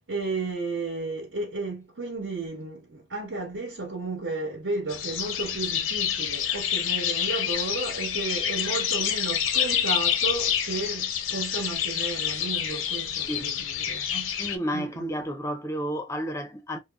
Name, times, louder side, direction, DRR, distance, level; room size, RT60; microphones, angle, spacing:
voice 1, 0.1-14.3 14.7-15.3, right 3 dB, 60° right, 1.1 m, -33 dB
sound 1, 4.9-14.6, left 9 dB, 85° left, 0.5 m, -28 dB
voice 2, 14.4-16.8, equal, 15° left, 0.4 m, -31 dB
3.6 x 2.0 x 2.2 m
head